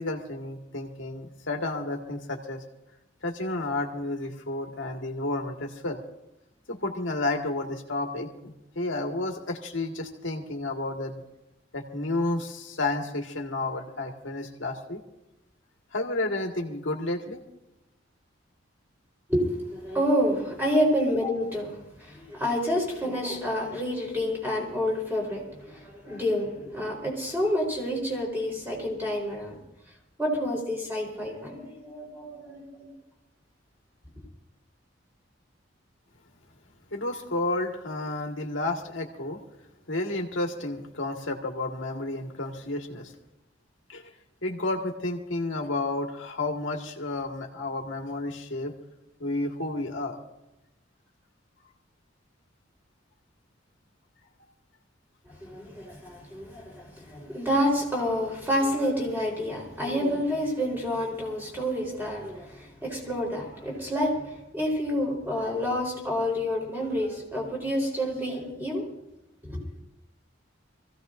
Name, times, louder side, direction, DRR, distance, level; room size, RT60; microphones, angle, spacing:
voice 1, 0.0-2.6 3.2-6.0 6.7-11.2 11.7-15.0 15.9-17.4 36.9-39.4 39.9-43.1 43.9-44.0 44.4-48.7 49.2-50.2, left 2 dB, 75° left, 2 dB, 1.7 m, -31 dB
voice 2, 19.3-29.6 30.2-32.9 55.3-68.8 69.4-69.6, equal, 10° right, -2 dB, 4.0 m, -28 dB
24.5 x 15.5 x 2.6 m, 0.90 s
head